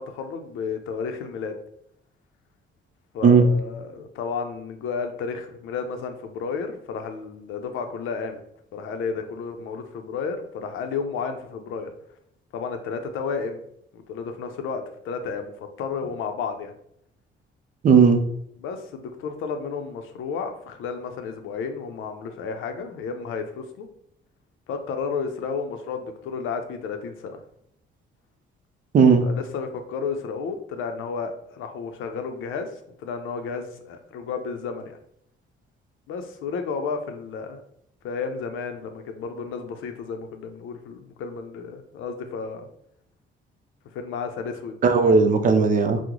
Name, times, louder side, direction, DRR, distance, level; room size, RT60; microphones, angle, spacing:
voice 1, 0.0-1.6 3.1-8.4 8.7-11.9 12.5-13.6 13.9-16.7 18.6-23.9 24.7-27.4 29.2-32.7 33.0-35.0 36.1-37.6 38.0-42.7 43.9-44.8, left 5 dB, 85° left, 6 dB, 0.5 m, -32 dB
voice 2, 17.8-18.2 28.9-29.3 44.8-46.0, right 5 dB, 45° right, 7 dB, 0.5 m, -16 dB
2.9 x 2.0 x 3.6 m, 0.72 s
cardioid pair, 90°, 20 cm